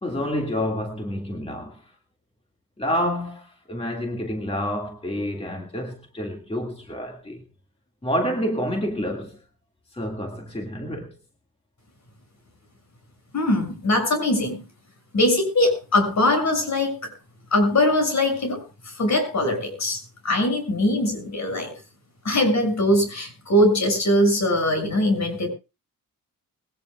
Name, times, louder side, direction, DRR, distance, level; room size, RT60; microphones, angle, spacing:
voice 1, 0.0-2.0 2.8-7.4 8.0-9.4 9.9-11.1, equal, 15° left, 2.0 m, -28 dB
voice 2, 13.3-14.6 15.1-17.1 17.5-18.6 18.9-21.7 22.2-25.5, left 1 dB, 50° left, 6.7 m, -21 dB
21.0 x 17.5 x 2.4 m
cardioid pair, 90°, 35 cm